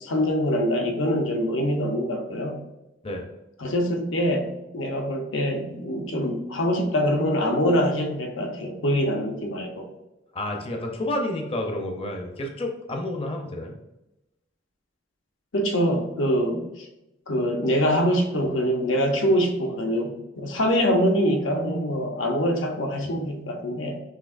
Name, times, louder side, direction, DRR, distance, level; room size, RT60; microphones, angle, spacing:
voice 1, 0.0-2.6 3.6-9.9 15.5-16.8 17.3-24.0, equal, 85° left, 3 dB, 0.8 m, -24 dB
voice 2, 10.3-13.8, left 1 dB, 30° left, 2 dB, 0.6 m, -30 dB
6.1 x 2.8 x 2.5 m, 0.92 s
head